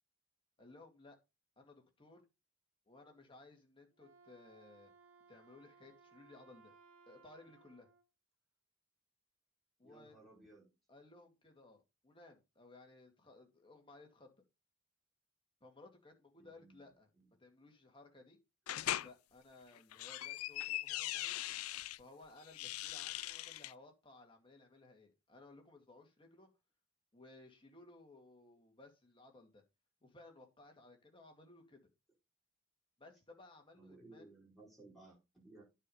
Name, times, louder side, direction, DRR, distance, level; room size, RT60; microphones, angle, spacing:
voice 1, 0.6-1.2 1.6-2.2 2.9-4.9 5.3-6.7 7.1-7.9 9.8-10.2 10.9-14.3 15.6-17.1 17.4-18.4 19.0-21.4 22.0-26.5 27.1-29.6 30.0-31.8 33.0-34.2, left 2 dB, 25° left, 2.3 m, -59 dB
Wind instrument woodwind instrument, 3.9-8.1, right 5 dB, 75° right, 1.5 m, -64 dB
voice 2, 9.8-10.7 16.4-16.8 17.1-17.3 33.7-35.6, right 2 dB, ahead, 5.2 m, -59 dB
sound 1, 18.7-19.1 19.8-22.0 22.4-23.7, left 14 dB, 85° left, 0.4 m, -40 dB
9.7 x 5.0 x 5.6 m
head